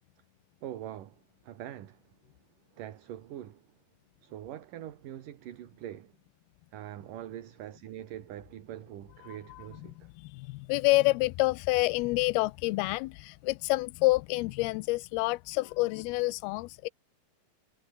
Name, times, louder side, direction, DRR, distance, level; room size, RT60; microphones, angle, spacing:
voice 1, 0.6-2.1 2.7-3.7 4.2-6.2 6.7-10.1, right 11 dB, 65° right, 3.0 m, -43 dB
voice 2, 9.2-9.6 10.2-16.9, left 22 dB, 90° left, 2.5 m, -28 dB
omnidirectional pair, 4.4 m